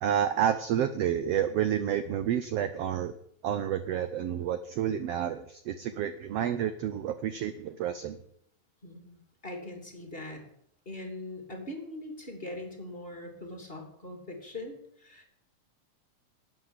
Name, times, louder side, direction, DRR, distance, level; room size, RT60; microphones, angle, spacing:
voice 1, 0.0-3.1 3.4-8.2, right 9 dB, 70° right, 11 dB, 1.5 m, -29 dB
voice 2, 8.8-10.4 10.8-15.2, left 1 dB, 20° left, 3 dB, 2.9 m, -41 dB
12.5 x 9.2 x 10.0 m, 0.69 s
omnidirectional pair, 3.6 m